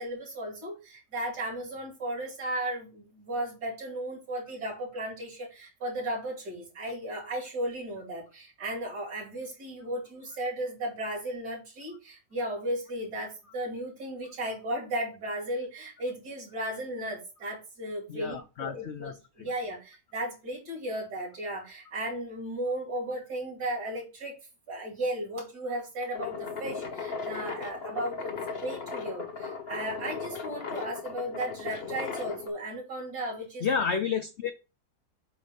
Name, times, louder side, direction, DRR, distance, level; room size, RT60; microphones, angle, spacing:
voice 1, 0.0-19.1 19.4-24.3 24.7-28.3 28.6-33.7, right 1 dB, 70° right, 3.1 m, -35 dB
voice 2, 18.1-19.5 33.6-34.5, left 6 dB, 75° left, 0.6 m, -31 dB
sound 1, 26.1-32.5, left 5 dB, 45° left, 1.0 m, -37 dB
7.6 x 2.6 x 5.2 m
omnidirectional pair, 1.8 m